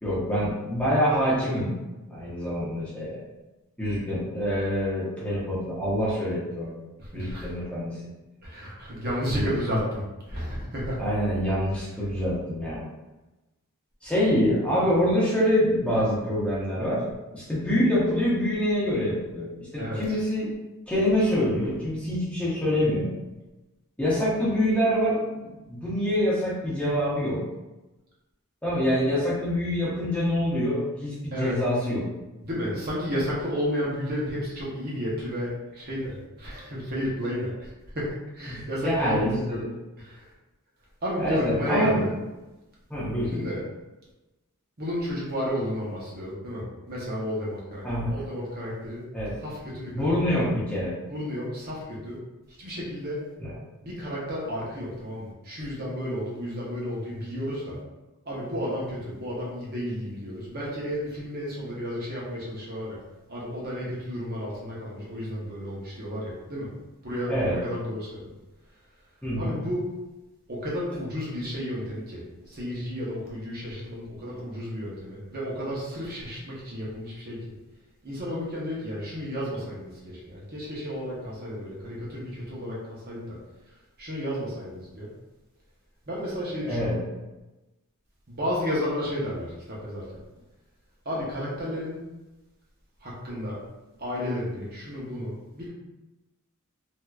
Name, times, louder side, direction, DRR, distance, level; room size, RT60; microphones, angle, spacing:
voice 1, 0.0-1.7 2.1-3.2 3.8-6.7 7.1-8.0 9.3-9.5 11.0-12.8 14.0-17.1 17.3-20.5 20.9-23.1 24.0-27.5 28.6-32.1 38.5-39.7 41.2-42.0 42.9-43.3 47.8-48.1 49.1-49.3 49.9-51.0 67.3-67.6 69.2-69.5 86.7-87.0, equal, 5° left, -8 dB, 0.8 m, -25 dB
voice 2, 7.0-7.5 8.4-10.0 10.3-11.0 19.8-20.2 31.3-31.5 32.4-39.6 40.0-40.3 41.0-42.1 43.3-43.6 44.8-49.0 49.4-50.0 51.1-52.2 52.6-53.2 53.8-57.8 58.3-63.0 63.3-66.7 67.0-68.3 69.4-69.8 70.5-77.5 78.0-83.4 84.0-85.1 86.1-87.0 88.3-90.2 91.0-92.0 93.0-93.6 94.0-95.7, equal, 45° right, -6 dB, 0.9 m, -32 dB
3.3 x 2.8 x 2.4 m, 1.1 s
head